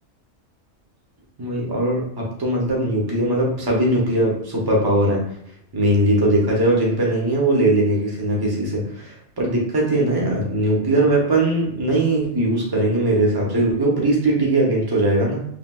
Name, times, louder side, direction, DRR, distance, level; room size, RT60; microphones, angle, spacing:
voice 1, 1.4-5.2 5.7-15.5, right 1 dB, 25° right, -3 dB, 0.6 m, -20 dB
3.2 x 2.7 x 2.3 m, 0.69 s
omnidirectional pair, 1.3 m